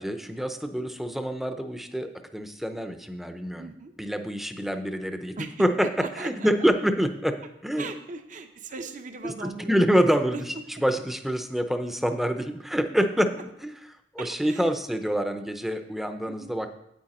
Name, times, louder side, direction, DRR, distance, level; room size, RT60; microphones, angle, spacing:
voice 1, 0.0-3.7 4.0-7.4 7.6-7.9 9.2-9.3 9.7-10.3 10.8-13.3 13.6-13.7 14.1-16.7, equal, ahead, 8 dB, 0.6 m, -26 dB
voice 2, 3.6-3.9 5.4-6.7 7.8-10.8 14.2-14.7 16.3-16.5, right 3 dB, 45° right, 7 dB, 0.6 m, -39 dB
8.9 x 8.6 x 4.2 m, 0.82 s
head